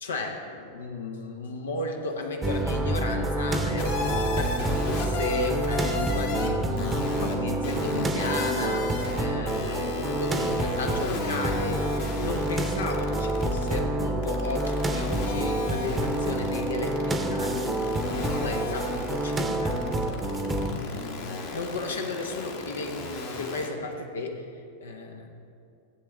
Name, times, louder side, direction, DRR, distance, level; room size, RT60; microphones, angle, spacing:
voice 1, 0.0-11.8 12.2-20.0 20.4-24.5 24.8-25.3, left 3 dB, 70° left, 3 dB, 1.1 m, -34 dB
sound 1, 2.4-20.7, right 1 dB, 15° right, 0.9 m, -28 dB
sound 2, 3.8-6.5 6.8-7.3 7.6-9.2 9.5-13.8 14.2-23.7, left 3 dB, 50° left, 1.7 m, -35 dB
15.5 x 8.2 x 3.6 m, 2.5 s
figure-of-eight pair, 90°, 0 cm